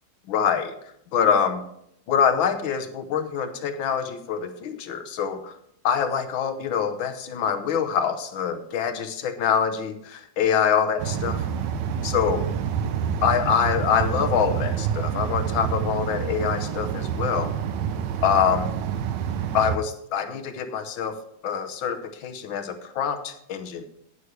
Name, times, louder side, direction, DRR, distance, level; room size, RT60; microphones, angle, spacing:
voice 1, 0.3-0.7 1.1-1.6 2.1-5.6 5.8-11.4 12.0-12.5 13.2-17.5 18.2-18.7 19.5-21.2 21.4-23.8, left 7 dB, 70° left, 9 dB, 1.7 m, -25 dB
sound 1, 11.0-19.8, right 8 dB, 70° right, 1.2 m, -27 dB
19.0 x 6.4 x 3.3 m, 0.74 s
omnidirectional pair, 2.3 m